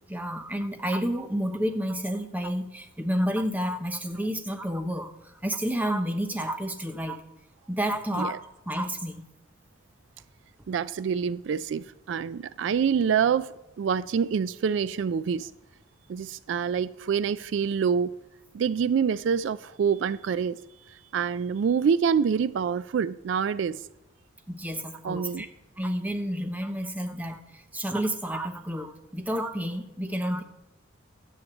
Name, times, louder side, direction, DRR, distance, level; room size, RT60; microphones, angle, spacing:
voice 1, 0.1-7.2 7.7-8.4 8.7-9.3 24.5-25.5 25.8-30.4, equal, 10° right, 0.7 m, -30 dB
voice 2, 10.7-15.5 16.1-18.2 18.5-20.6 21.1-23.8 25.0-25.4, right 7 dB, 65° right, 0.3 m, -26 dB
9.7 x 7.9 x 7.1 m
head